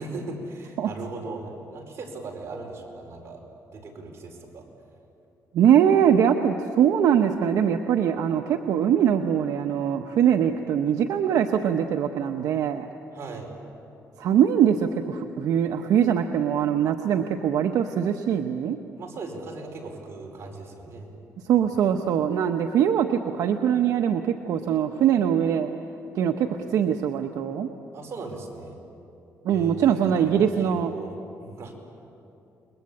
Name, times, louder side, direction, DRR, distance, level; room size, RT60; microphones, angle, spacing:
voice 1, 0.0-3.4 3.7-4.6 13.1-13.5 19.0-21.1 21.6-21.7 27.9-28.8 29.5-31.7, right 3 dB, 50° right, 1 dB, 5.1 m, -38 dB
voice 2, 5.5-12.9 14.2-18.8 21.5-25.7 26.1-27.7 29.4-30.9, right 9 dB, 80° right, 6 dB, 1.0 m, -22 dB
29.0 x 22.0 x 8.6 m, 2.8 s
cardioid pair, 115°, 6 cm